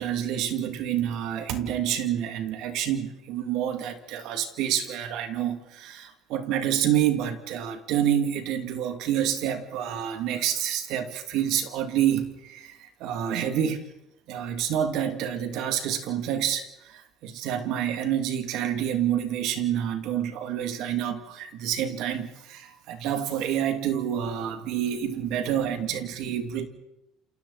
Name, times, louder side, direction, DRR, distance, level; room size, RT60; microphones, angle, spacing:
voice 1, 0.0-13.8 14.3-26.7, right 10 dB, 70° right, 2.8 m, -28 dB
29.0 x 28.5 x 4.3 m
cardioid pair, 120°, 0 cm